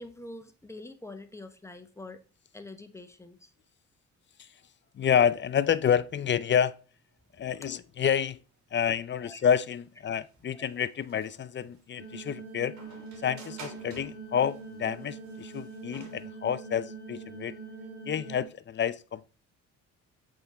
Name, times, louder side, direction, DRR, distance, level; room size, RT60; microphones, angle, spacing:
voice 1, 0.0-2.2 2.5-3.5 9.2-9.4 10.5-10.6, left 2 dB, 10° left, 1.0 m, -45 dB
voice 2, 5.0-6.8 7.4-8.4 8.7-12.8 13.2-17.6 18.1-19.3, left 8 dB, 40° left, 0.5 m, -28 dB
sound 1, 6.5-16.3, right 5 dB, 65° right, 2.2 m, -53 dB
sound 2, 12.0-18.4, right 3 dB, 30° right, 2.3 m, -43 dB
8.0 x 3.8 x 4.2 m
cardioid pair, 90°, 30 cm